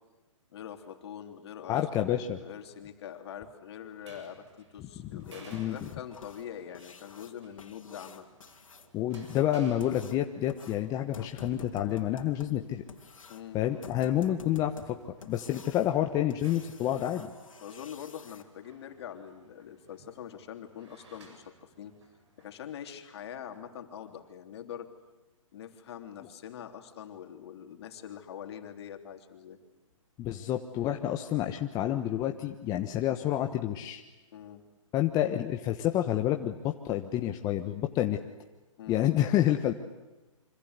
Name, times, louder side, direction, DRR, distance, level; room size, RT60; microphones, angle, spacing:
voice 1, 0.5-2.1 2.4-8.3 12.4-12.7 13.3-13.6 17.6-22.0 22.4-24.9 25.5-29.6 34.3-34.6 38.8-39.1, left 9 dB, 50° left, 6 dB, 3.4 m, -44 dB
voice 2, 1.7-2.4 4.8-4.9 5.5-5.8 8.9-12.8 13.5-15.0 15.3-17.3 30.2-34.0 34.9-38.2 38.9-39.7, left 12 dB, 20° left, 5 dB, 1.2 m, -29 dB
sound 1, 3.8-22.6, right 3 dB, 55° right, 7.8 m, -58 dB
sound 2, 5.2-18.4 20.7-20.8 21.3-21.4 21.8-21.9 22.4-22.5 23.0-23.1 23.5-23.6 24.1-24.2, left 6 dB, 80° left, 3.2 m, -51 dB
27.0 x 26.0 x 8.2 m, 1.1 s
hypercardioid pair, 145°, 17 cm